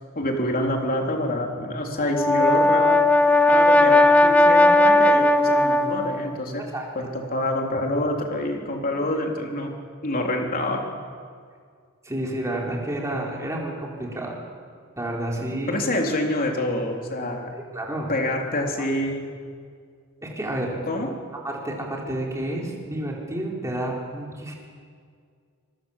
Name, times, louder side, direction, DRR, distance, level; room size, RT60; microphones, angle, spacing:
voice 1, 0.2-3.0 3.5-6.7 6.9-9.7 10.0-10.8 15.7-17.5 18.1-19.3 20.9-21.1, left 1 dB, 40° left, 1 dB, 3.7 m, -26 dB
Brass instrument, 2.0-6.3, left 2 dB, 5° left, 0.8 m, -17 dB
voice 2, 12.0-14.4 15.0-15.8 17.7-18.1 20.2-20.8 21.4-24.5, right 1 dB, 15° right, -2 dB, 4.7 m, -30 dB
25.5 x 23.0 x 7.5 m, 2.1 s
head